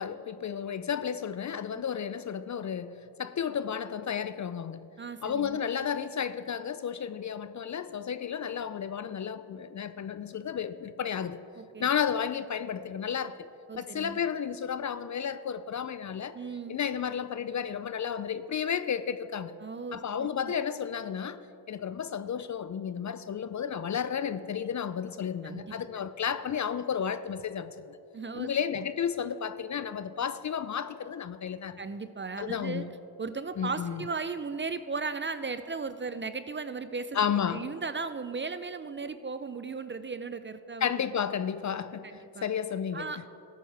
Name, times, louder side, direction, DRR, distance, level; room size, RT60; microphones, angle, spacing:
voice 1, 0.0-4.9 5.2-11.4 11.8-13.5 13.8-16.4 16.7-19.5 19.9-21.4 21.7-28.0 28.4-31.8 32.4-32.9 33.6-34.0 37.1-37.7 40.8-43.3, left 8 dB, 40° left, 13 dB, 0.4 m, -32 dB
voice 2, 5.0-5.6 11.6-11.9 13.7-14.2 16.3-16.8 19.6-20.5 25.4-25.7 28.1-28.5 31.8-32.8 33.2-37.2 37.5-40.9 42.0-42.4 42.9-43.3, right 4 dB, 25° right, 12 dB, 0.5 m, -36 dB
14.0 x 9.4 x 3.4 m, 2.7 s
cardioid pair, 55°, 45 cm